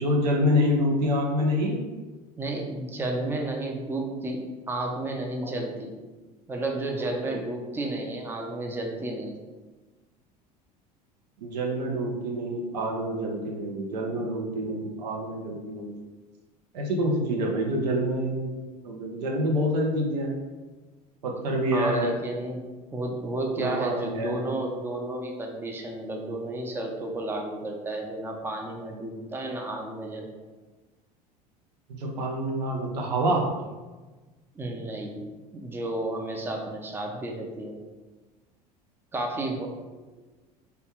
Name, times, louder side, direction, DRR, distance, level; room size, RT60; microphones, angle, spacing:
voice 1, 0.0-1.8 5.4-5.5 7.3-7.4 11.4-15.9 16.7-20.3 21.2-22.2 23.6-24.5 31.9-33.5, equal, 85° right, 0 dB, 0.5 m, -27 dB
voice 2, 2.4-5.9 6.5-9.4 21.7-22.6 22.9-30.3 34.6-35.2 35.5-37.7 39.1-39.7, right 2 dB, 10° right, 1 dB, 0.4 m, -32 dB
2.2 x 2.1 x 2.9 m, 1.2 s
hypercardioid pair, 75°, 20 cm